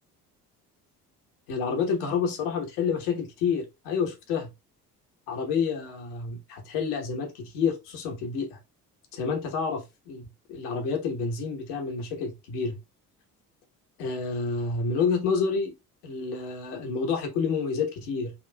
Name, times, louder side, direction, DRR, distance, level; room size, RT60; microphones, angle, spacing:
voice 1, 1.5-4.5 5.3-8.6 9.1-12.8 14.0-15.7 16.0-18.3, left 5 dB, 70° left, 1.1 m, -29 dB
4.1 x 2.5 x 2.2 m
hypercardioid pair, 50°, 46 cm